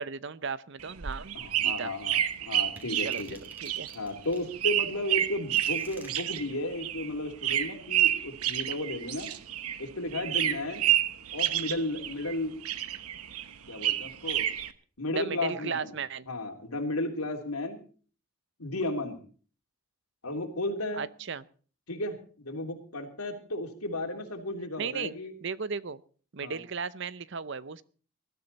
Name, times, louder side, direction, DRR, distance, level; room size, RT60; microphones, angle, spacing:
voice 1, 0.0-1.9 3.0-3.9 15.1-16.3 21.0-21.4 24.8-25.1 25.4-26.0 26.3-27.8, right 5 dB, 55° right, 17 dB, 0.7 m, -36 dB
sound 1, 0.8-9.9 10.1-12.4 12.6-14.7, right 12 dB, 90° right, 1.1 m, -29 dB
voice 2, 1.3-3.4 3.9-9.3 9.8-10.9 11.3-12.5 13.7-14.5 15.0-15.9 16.3-17.8 18.6-19.2 20.2-21.0 21.9-25.3 26.4-26.6, left 1 dB, 90° left, 3 dB, 3.3 m, -34 dB
sound 2, 2.8-4.5 5.2-6.1, right 1 dB, 10° right, 2.8 m, -51 dB
20.0 x 13.0 x 4.2 m, 0.41 s
head